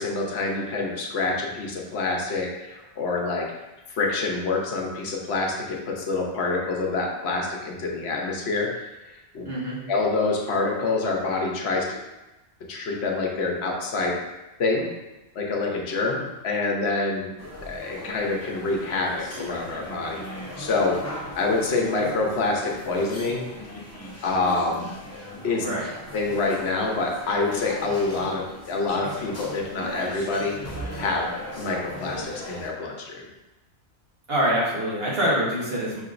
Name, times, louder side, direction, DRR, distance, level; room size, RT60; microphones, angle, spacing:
voice 1, 0.0-3.5 3.9-8.7 9.1-9.4 9.9-12.0 12.7-14.2 14.6-14.9 15.4-17.3 17.7-20.2 20.6-21.0 21.4-23.5 24.2-24.9 25.4-25.7 26.1-30.6 31.0-31.3 31.6-33.3, left 3 dB, 70° left, 0 dB, 1.0 m, -26 dB
voice 2, 9.4-9.8 25.6-25.9 34.3-36.0, equal, 60° right, -5 dB, 1.4 m, -25 dB
sound 1, 17.4-32.7, equal, 15° left, 0.6 m, -38 dB
5.5 x 2.8 x 2.5 m, 1.0 s
omnidirectional pair, 1.1 m